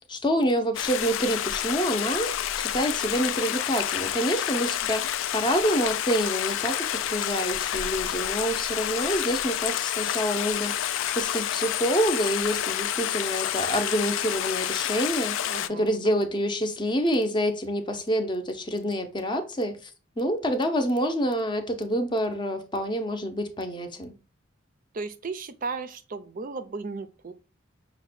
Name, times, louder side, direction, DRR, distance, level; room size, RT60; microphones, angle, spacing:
voice 1, 0.1-19.9 20.2-24.1, equal, 25° left, 0.6 m, -27 dB
Stream, 0.7-15.7, left 11 dB, 70° left, 0.3 m, -29 dB
voice 2, 15.4-16.4 24.9-27.3, right 4 dB, 40° right, 0.5 m, -36 dB
5.7 x 2.2 x 4.1 m
head